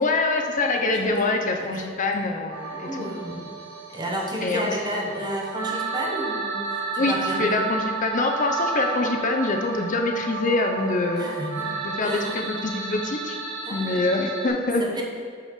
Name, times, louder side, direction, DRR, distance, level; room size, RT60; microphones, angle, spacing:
voice 1, 0.0-3.1 4.4-4.8 7.0-11.3 11.8-13.4 13.7-14.8, left 2 dB, 40° left, 3 dB, 0.6 m, -25 dB
voice 2, 1.6-1.9 2.7-3.5 3.9-7.6 11.2-11.7 12.0-12.6 13.6-14.3 14.8-15.0, equal, 20° right, -1 dB, 1.0 m, -32 dB
sound 1, 2.5-14.5, right 4 dB, 85° right, 1.1 m, -32 dB
5.5 x 5.1 x 5.8 m, 2.3 s
head